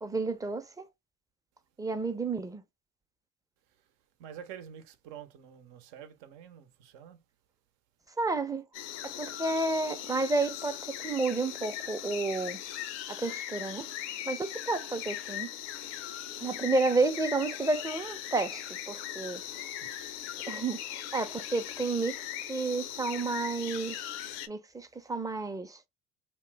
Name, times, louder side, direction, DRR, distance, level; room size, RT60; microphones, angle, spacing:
voice 1, 0.0-0.9 1.8-2.6 8.2-8.6 9.0-12.6 13.1-15.5 16.4-19.8 20.5-24.2 24.5-25.8, right 3 dB, 10° right, 0.5 m, -31 dB
voice 2, 4.2-7.2 19.8-20.2, right 9 dB, 70° right, 0.8 m, -48 dB
sound 1, 8.7-24.5, left 11 dB, 80° left, 0.6 m, -39 dB
2.9 x 2.1 x 3.3 m
supercardioid pair, 85°, 34 cm